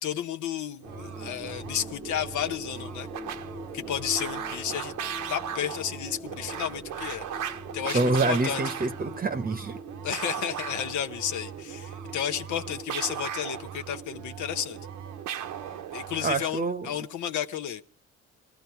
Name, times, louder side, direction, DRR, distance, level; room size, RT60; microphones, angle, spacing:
voice 1, 0.0-3.1 3.7-4.9 5.3-8.6 10.0-14.8 15.9-17.8, left 9 dB, 75° left, 7 dB, 0.8 m, -32 dB
sound 1, 0.8-17.3, left 2 dB, 5° left, 0.9 m, -46 dB
sound 2, 0.8-16.5, right 9 dB, 80° right, 1.0 m, -38 dB
voice 2, 7.9-9.8 16.2-16.9, right 3 dB, 30° right, 9 dB, 0.9 m, -26 dB
20.0 x 14.0 x 4.6 m, 0.43 s
cardioid pair, 90°, 30 cm